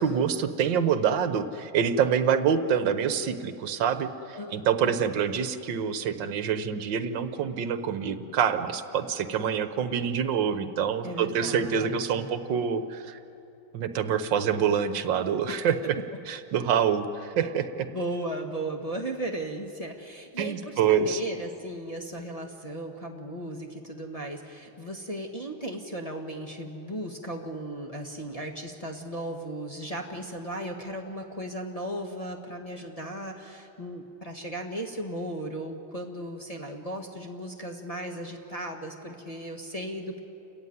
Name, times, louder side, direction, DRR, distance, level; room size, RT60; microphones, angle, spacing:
voice 1, 0.0-4.1 4.5-13.2 13.7-15.9 16.3-17.9 20.4-21.2, right 7 dB, 65° right, 10 dB, 1.6 m, -26 dB
voice 2, 4.3-5.0 11.0-12.3 15.5-15.6 17.9-40.2, right 1 dB, 20° left, -1 dB, 1.4 m, -36 dB
29.5 x 14.0 x 9.4 m, 2.8 s
omnidirectional pair, 2.2 m